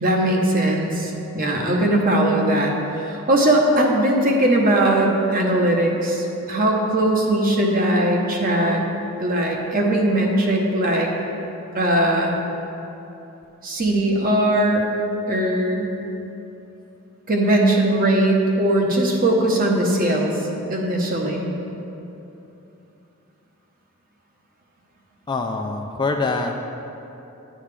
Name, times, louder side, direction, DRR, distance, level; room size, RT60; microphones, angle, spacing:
voice 1, 0.0-8.8 9.2-11.1 11.7-12.3 13.6-14.9 15.3-15.9 17.3-20.3 20.7-21.5, right 1 dB, 40° right, 0 dB, 1.0 m, -20 dB
voice 2, 25.3-26.6, left 3 dB, 20° left, 3 dB, 0.3 m, -24 dB
9.5 x 8.8 x 3.4 m, 2.9 s
head